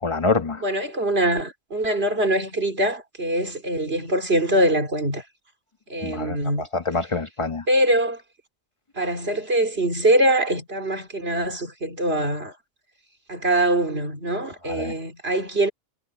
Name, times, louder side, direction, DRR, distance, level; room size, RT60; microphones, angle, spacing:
voice 1, 0.0-0.6 6.0-7.7 14.7-14.9, left 3 dB, 25° left, 1.4 m, -26 dB
voice 2, 0.6-5.2 5.9-6.7 7.7-8.2 9.0-12.5 13.3-15.7, right 1 dB, 55° right, 3.5 m, -23 dB
omnidirectional pair, 1.3 m